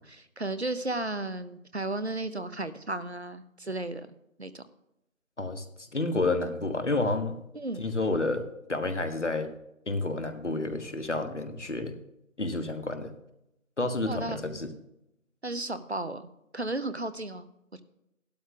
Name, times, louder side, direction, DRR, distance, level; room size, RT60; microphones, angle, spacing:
voice 1, 0.0-4.1 4.4-4.6 7.5-7.9 14.0-14.4 15.4-16.3 16.5-17.5, right 2 dB, 55° right, 12 dB, 0.7 m, -34 dB
voice 2, 5.4-7.4 7.8-9.5 9.9-12.0 12.4-13.1 13.8-14.7, left 2 dB, 60° left, 8 dB, 1.4 m, -30 dB
14.0 x 12.0 x 2.4 m, 0.84 s
figure-of-eight pair, 175°, 41 cm